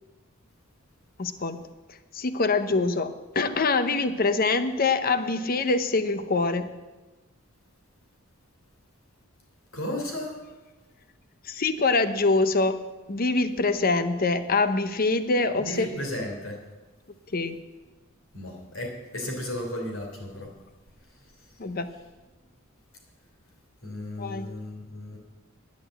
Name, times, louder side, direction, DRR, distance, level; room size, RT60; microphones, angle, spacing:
voice 1, 1.2-1.6 2.1-6.7 11.4-12.8 13.1-15.9 17.3-17.6 21.6-21.9 24.2-24.5, left 3 dB, 45° left, 11 dB, 0.8 m, -24 dB
voice 2, 9.7-10.4 15.6-16.6 18.3-20.5 23.8-25.2, left 1 dB, 70° left, 1 dB, 3.4 m, -34 dB
11.0 x 8.3 x 7.8 m, 1.2 s
head